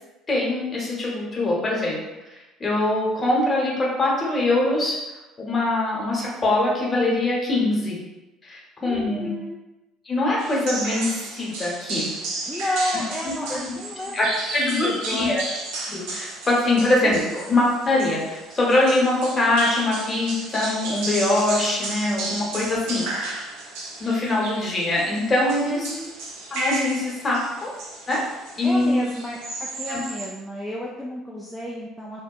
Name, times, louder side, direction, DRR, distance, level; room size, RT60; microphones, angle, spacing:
voice 1, 0.3-2.0 2.6-5.0 5.4-8.0 8.4-9.3 10.0-12.1 13.2-13.7 14.1-14.3 14.5-15.4 15.9-23.4 24.0-25.9 26.5-27.7 28.1-28.2 28.6-29.0 29.9-30.0, left 2 dB, 30° left, -4 dB, 0.9 m, -23 dB
voice 2, 8.8-9.6 12.5-14.4 14.7-15.4 17.0-17.3 25.7-26.1 28.6-32.2, left 1 dB, 5° left, -4 dB, 0.3 m, -31 dB
sound 1, 10.4-30.3, right 2 dB, 70° right, 0.5 m, -33 dB
2.8 x 2.0 x 2.4 m, 1.0 s
hypercardioid pair, 65°, 0 cm